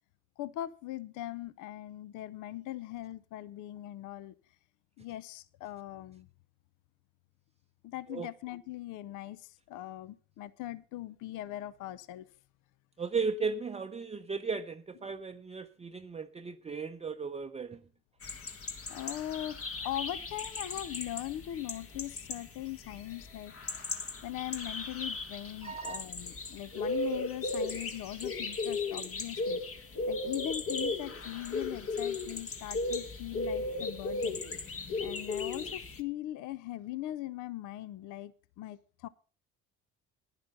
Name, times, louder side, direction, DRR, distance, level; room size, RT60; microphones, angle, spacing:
voice 1, 0.4-4.3 5.0-6.3 7.8-12.3 15.1-15.2 18.9-19.6 19.8-23.5 24.2-29.6 30.1-34.4 35.0-39.1, left 14 dB, 65° left, 0.7 m, -40 dB
voice 2, 13.0-17.8 25.6-26.0, right 5 dB, 20° right, 0.6 m, -36 dB
sound 1, 18.2-36.0, left 3 dB, 40° left, 1.7 m, -36 dB
10.5 x 10.5 x 5.4 m
hypercardioid pair, 55°, 33 cm